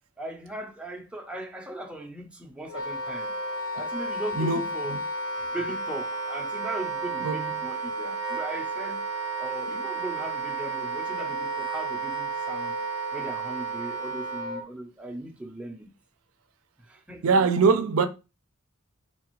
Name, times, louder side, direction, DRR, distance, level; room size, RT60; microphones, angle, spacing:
voice 1, 0.2-3.3 3.7-5.0 5.5-9.0 9.4-12.8 13.1-15.9 16.9-17.3, right 1 dB, 5° right, 0.5 m, -38 dB
Wind instrument woodwind instrument, 2.7-14.6, right 3 dB, 80° left, 1.1 m, -32 dB
voice 2, 4.3-5.0 7.2-7.6 17.2-18.1, right 4 dB, 80° right, 0.4 m, -23 dB
4.0 x 2.4 x 3.0 m
head